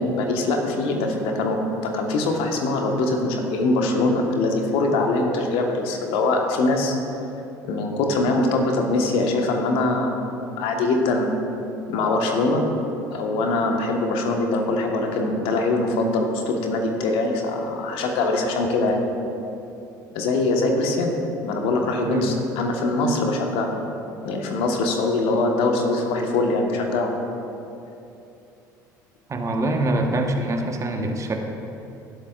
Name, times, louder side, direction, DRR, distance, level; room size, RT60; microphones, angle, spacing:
voice 1, 0.0-6.9 7.6-11.4 11.9-12.6 13.1-19.0 20.1-21.1 21.4-23.7 24.2-27.1, left 2 dB, 65° left, 2 dB, 1.4 m, -23 dB
voice 2, 22.1-22.4 29.3-31.4, right 2 dB, 30° right, 3 dB, 1.2 m, -24 dB
18.5 x 8.0 x 2.5 m, 2.9 s
hypercardioid pair, 65°, 10 cm